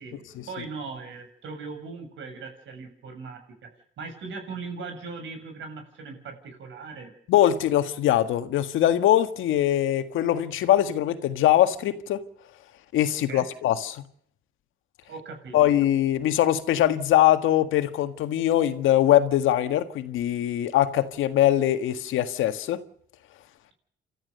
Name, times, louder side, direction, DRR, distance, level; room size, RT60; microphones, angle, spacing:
voice 1, 0.0-3.4 4.0-7.1 13.3-13.5 15.1-15.6, right 4 dB, 70° right, 7.5 m, -39 dB
voice 2, 7.3-12.2 12.9-14.0 15.5-22.8, left 12 dB, 85° left, 1.7 m, -22 dB
29.0 x 13.5 x 6.7 m
cardioid pair, 90°, 20 cm